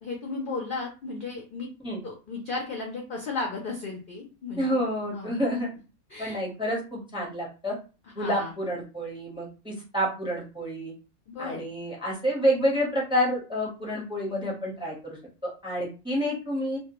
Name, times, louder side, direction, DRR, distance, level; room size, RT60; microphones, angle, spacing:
voice 1, 0.0-1.7 2.0-5.3 6.1-6.4 8.2-8.5 11.3-11.6, left 3 dB, 60° left, 0 dB, 0.5 m, -35 dB
voice 2, 4.6-5.7 6.2-7.8 8.2-10.9 11.4-15.2 15.4-16.8, equal, 5° right, -3 dB, 0.6 m, -28 dB
2.2 x 2.2 x 2.9 m, 0.32 s
omnidirectional pair, 1.4 m